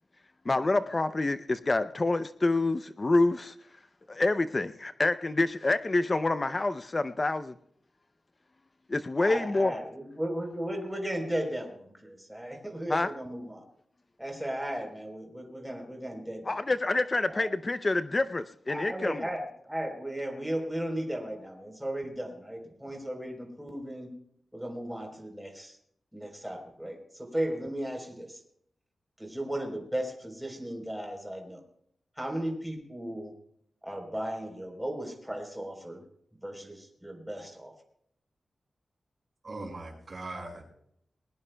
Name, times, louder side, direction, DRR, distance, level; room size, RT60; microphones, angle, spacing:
voice 1, 0.5-3.5 4.1-7.5 8.9-9.7 12.9-13.1 16.5-19.2, left 2 dB, 30° left, 11 dB, 0.5 m, -27 dB
voice 2, 9.2-13.6 14.2-16.6 17.3-17.5 18.7-24.1 24.5-25.8 26.1-28.4 29.2-31.6 32.2-33.3 33.8-36.0 36.4-37.7, right 1 dB, 5° right, 2 dB, 3.8 m, -36 dB
voice 3, 39.4-40.6, right 2 dB, 50° right, 2 dB, 5.4 m, -40 dB
20.5 x 20.5 x 2.3 m, 0.70 s
wide cardioid pair, 105°, 0 cm